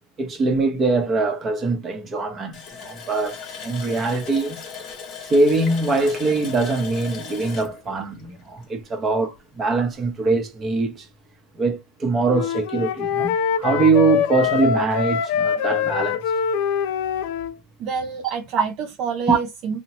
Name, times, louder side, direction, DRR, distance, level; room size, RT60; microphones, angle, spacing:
voice 1, 0.2-3.4 3.6-4.6 5.3-11.1 11.5-16.2 19.3-19.4, right 3 dB, 30° right, 0.8 m, -22 dB
Water tap faucet, 2.5-9.0 9.4-9.5 9.9-10.1, left 6 dB, 45° left, 0.8 m, -38 dB
Wind instrument woodwind instrument, 12.3-17.5, left 8 dB, 70° left, 0.4 m, -24 dB
voice 2, 17.8-19.8, right 6 dB, 50° right, 0.4 m, -28 dB
2.8 x 2.1 x 2.8 m
supercardioid pair, 115°, 0 cm